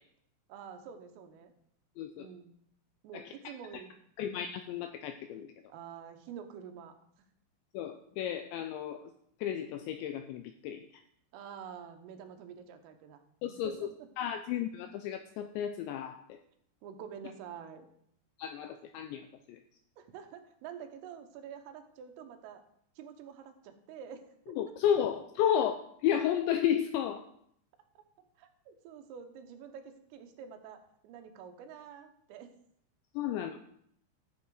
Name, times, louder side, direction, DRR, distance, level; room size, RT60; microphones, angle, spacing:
voice 1, 0.5-1.5 2.2-2.5 3.0-3.9 5.7-7.0 11.3-13.2 13.5-13.9 16.8-17.9 20.0-22.6 23.0-25.0 28.4-30.8 31.0-32.5, right 7 dB, 85° right, 6 dB, 3.7 m, -47 dB
voice 2, 2.0-2.3 3.1-3.3 4.2-5.5 7.7-9.1 9.4-10.9 13.4-13.9 14.2-16.4 18.4-19.6 24.5-25.7 26.0-27.3 33.2-33.6, left 9 dB, 85° left, 8 dB, 2.6 m, -32 dB
14.0 x 7.8 x 4.8 m, 0.70 s
omnidirectional pair, 5.8 m